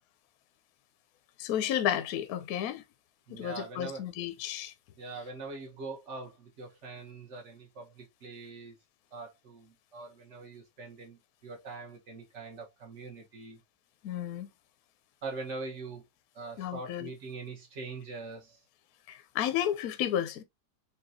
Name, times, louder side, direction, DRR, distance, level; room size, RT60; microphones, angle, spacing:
voice 1, 1.4-2.8 3.3-4.7 14.0-14.5 16.6-17.1 19.1-20.4, left 10 dB, 65° left, 0.9 m, -32 dB
voice 2, 3.3-4.0 5.0-8.8 9.1-13.6 15.2-16.0 16.3-18.6, right 3 dB, 45° right, 1.3 m, -43 dB
4.4 x 3.0 x 2.7 m
omnidirectional pair, 2.0 m